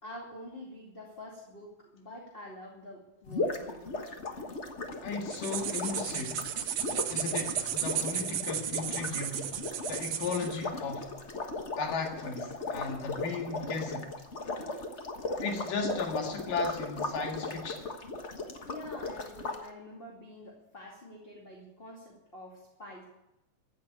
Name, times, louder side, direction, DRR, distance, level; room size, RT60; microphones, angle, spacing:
voice 1, 0.0-4.1 18.7-23.0, left 1 dB, 20° left, -2 dB, 2.2 m, -47 dB
sound 1, 3.3-19.6, left 3 dB, 60° left, 0.7 m, -37 dB
voice 2, 5.0-6.5 7.1-9.5 9.9-11.1 11.8-14.1 15.4-17.8, left 4 dB, 85° left, 2 dB, 3.7 m, -35 dB
sound 2, 5.3-10.6, right 10 dB, 70° right, 1.4 m, -34 dB
15.0 x 9.9 x 8.5 m, 0.88 s
omnidirectional pair, 3.7 m